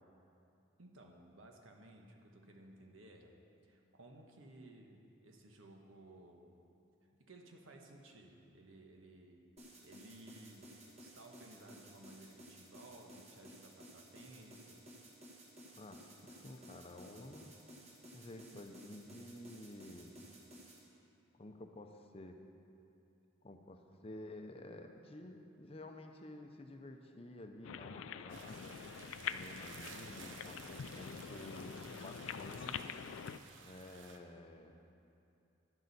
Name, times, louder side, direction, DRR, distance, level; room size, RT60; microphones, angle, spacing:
voice 1, 0.8-3.3 3.6-6.6 7.0-9.4 9.8-14.8, right 1 dB, 85° right, 2 dB, 1.2 m, -57 dB
sound 1, 9.6-20.8, right 1 dB, 35° right, 1.4 m, -56 dB
voice 2, 15.7-17.5 18.1-20.1 21.4-22.4 23.4-28.8 29.3-32.8 33.6-34.7, left 1 dB, 30° left, 5 dB, 0.6 m, -51 dB
sound 2, 27.6-33.4, left 7 dB, 80° left, 0.4 m, -45 dB
sound 3, 28.3-34.2, right 5 dB, 70° right, 0.7 m, -55 dB
11.0 x 10.5 x 4.1 m, 2.7 s
head